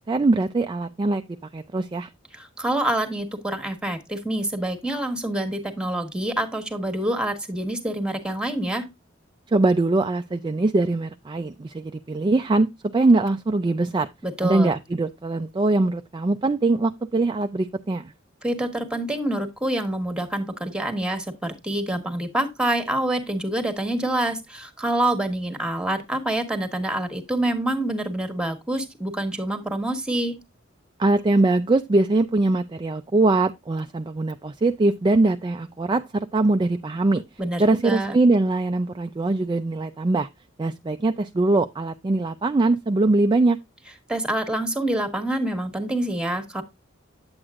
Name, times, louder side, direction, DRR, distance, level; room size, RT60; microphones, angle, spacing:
voice 1, 0.1-1.2 1.5-2.1 9.5-12.7 12.9-14.1 14.4-18.1 31.0-37.2 37.6-40.3 40.6-43.6, right 2 dB, 25° right, 0.4 m, -22 dB
voice 2, 2.3-8.9 14.2-14.8 18.4-30.3 37.4-38.2 44.1-46.6, right 1 dB, 5° right, 1.3 m, -26 dB
8.7 x 8.0 x 2.4 m
head